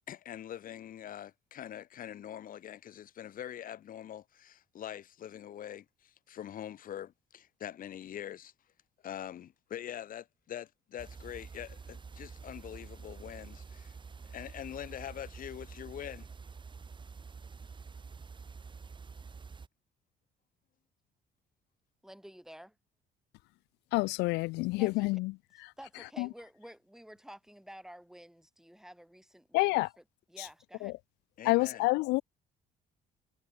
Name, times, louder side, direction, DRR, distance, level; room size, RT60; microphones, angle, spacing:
voice 1, 0.1-8.5 9.0-13.9 14.2-16.3 31.4-31.9, left 10 dB, 55° left, 2.4 m, -44 dB
sound 1, 11.0-19.7, right 5 dB, 30° right, 4.0 m, -48 dB
voice 2, 22.0-22.8 24.8-25.2 25.8-29.8 30.3-31.0, equal, 5° right, 3.5 m, -51 dB
voice 3, 23.9-25.3 25.6-25.7 26.2-26.3 29.5-29.9 30.4-30.5 30.8-30.9 31.4-32.2, left 23 dB, 90° left, 0.4 m, -28 dB
cardioid pair, 110°, 17 cm